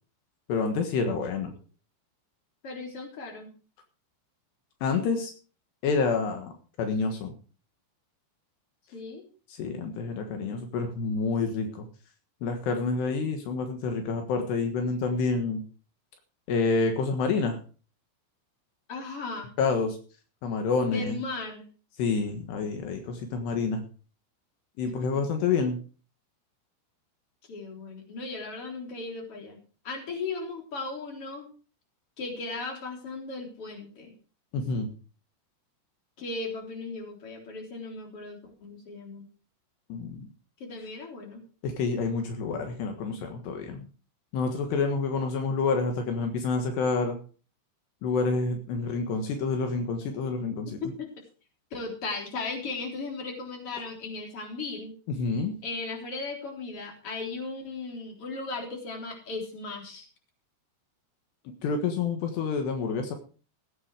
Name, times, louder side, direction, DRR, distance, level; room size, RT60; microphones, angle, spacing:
voice 1, 0.5-1.6 4.8-5.3 5.8-7.3 9.5-11.9 12.4-15.6 16.5-17.6 19.6-20.0 20.4-21.2 22.0-23.8 24.8-25.8 34.5-34.9 39.9-40.3 41.6-43.9 44.3-47.2 48.0-50.8 55.1-55.6 61.6-63.2, left 4 dB, 75° left, 5 dB, 3.6 m, -28 dB
voice 2, 2.6-3.5 8.9-9.2 18.9-19.5 20.8-21.7 27.5-29.6 29.8-31.5 32.2-34.1 36.2-39.2 40.6-41.4 51.0-51.1 51.7-54.9 55.6-60.0, left 3 dB, 35° left, 1 dB, 4.3 m, -36 dB
17.0 x 8.7 x 4.9 m, 0.38 s
omnidirectional pair, 5.0 m